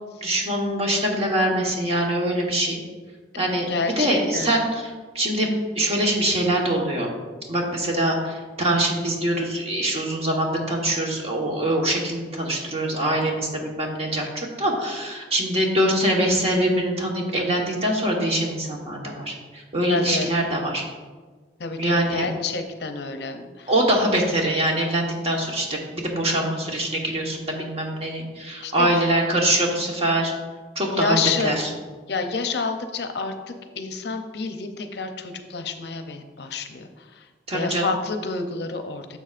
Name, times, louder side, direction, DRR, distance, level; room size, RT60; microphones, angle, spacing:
voice 1, 0.2-2.8 3.4-5.5 5.7-7.1 7.5-20.8 21.8-22.3 23.7-25.7 25.9-30.3 30.7-31.7 37.5-37.9, right 1 dB, 35° right, -1 dB, 1.3 m, -23 dB
voice 2, 3.7-4.5 19.9-20.3 21.6-23.7 28.6-28.9 30.9-31.5 32.1-36.9 37.5-39.2, left 4 dB, 60° left, 7 dB, 0.6 m, -28 dB
10.0 x 7.0 x 2.5 m, 1.4 s
head